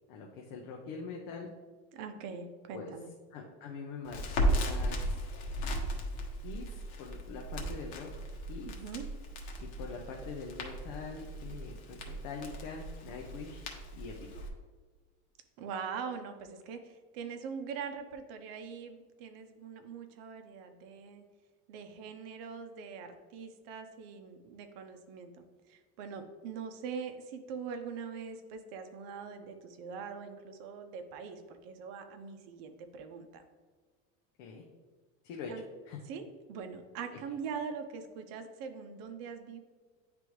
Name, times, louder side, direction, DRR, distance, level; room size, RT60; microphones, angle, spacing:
voice 1, 0.1-1.5 2.7-2.9 3.3-5.2 6.4-8.1 8.5-8.8 9.6-13.6 13.9-14.1 34.4-34.7 35.2-36.0 37.1-37.2, left 4 dB, 60° left, 0 dB, 0.8 m, -44 dB
voice 2, 1.9-3.1 8.7-9.1 15.6-21.2 21.7-33.4 35.5-35.6 36.1-36.2 36.5-39.6, right 6 dB, 65° right, 7 dB, 0.8 m, -42 dB
Crackle, 4.0-14.5, equal, 85° left, 1.2 m, -36 dB
9.5 x 3.4 x 3.1 m, 1.4 s
cardioid pair, 165°, 33 cm